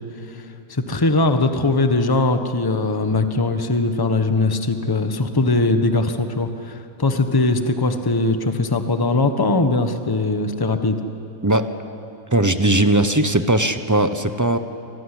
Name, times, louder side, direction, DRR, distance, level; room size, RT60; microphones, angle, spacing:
voice 1, 0.3-11.0, left 2 dB, 15° left, 7 dB, 1.1 m, -20 dB
voice 2, 11.4-11.7 12.3-14.6, right 1 dB, 15° right, 9 dB, 0.7 m, -18 dB
27.0 x 19.0 x 9.9 m, 3.0 s
omnidirectional pair, 1.7 m